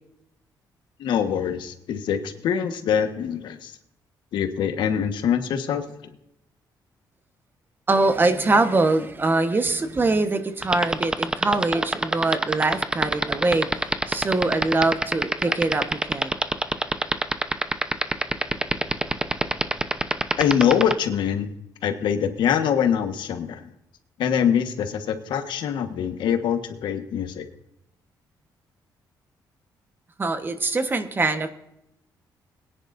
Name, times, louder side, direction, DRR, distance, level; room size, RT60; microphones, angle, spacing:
voice 1, 1.0-3.8 4.3-6.1 20.4-21.5 21.8-23.7 24.2-27.5, left 8 dB, 85° left, 7 dB, 1.4 m, -24 dB
voice 2, 7.9-13.7 14.1-16.4 30.2-31.5, right 3 dB, 25° right, 8 dB, 1.2 m, -23 dB
sound 1, 10.6-20.9, right 2 dB, 10° right, 0.8 m, -22 dB
21.5 x 10.0 x 2.6 m, 0.81 s
cardioid pair, 125°, 8 cm